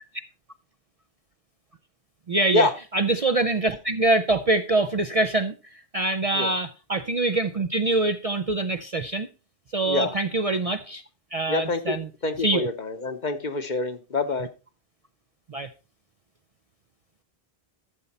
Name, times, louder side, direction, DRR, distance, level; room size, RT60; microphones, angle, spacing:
voice 1, 2.3-5.5 5.9-9.3 9.7-11.0 11.3-12.1 12.4-12.7 15.5-15.7, right 2 dB, 45° right, 0.5 m, -24 dB
voice 2, 11.5-12.0 12.2-14.5, left 3 dB, 45° left, 1.0 m, -26 dB
12.5 x 6.9 x 4.2 m
omnidirectional pair, 1.1 m